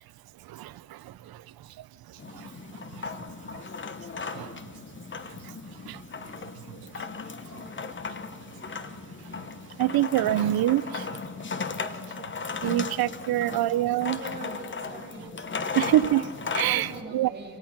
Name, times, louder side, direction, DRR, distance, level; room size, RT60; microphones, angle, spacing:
voice 1, 0.4-3.7 4.0-4.8 5.3-7.1 7.5-7.7 8.3-8.4 8.7-11.7 12.0-12.3 12.6-14.2 15.7-17.3, right 14 dB, 85° right, 18 dB, 0.7 m, -29 dB
sound 1, 2.2-17.0, left 4 dB, 30° left, 1.1 m, -36 dB
voice 2, 13.3-13.9 14.2-15.3 15.6-15.8 16.6-17.6, right 2 dB, 30° right, -1 dB, 5.7 m, -42 dB
28.0 x 18.0 x 5.9 m, 2.2 s
cardioid pair, 110°, 36 cm